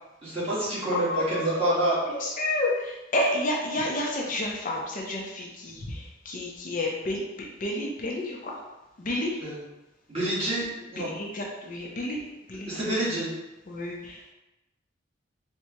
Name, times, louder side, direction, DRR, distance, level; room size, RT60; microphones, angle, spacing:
voice 1, 0.2-2.0 9.4-9.6 10.1-10.7 10.9-11.1 12.7-13.3, right 1 dB, 30° right, -9 dB, 1.3 m, -27 dB
voice 2, 0.9-1.8 2.1-8.6 9.0-9.4 11.0-12.2 12.5-13.0 13.7-14.3, left 1 dB, 45° left, -2 dB, 0.5 m, -30 dB
4.4 x 2.2 x 2.8 m, 1.0 s
head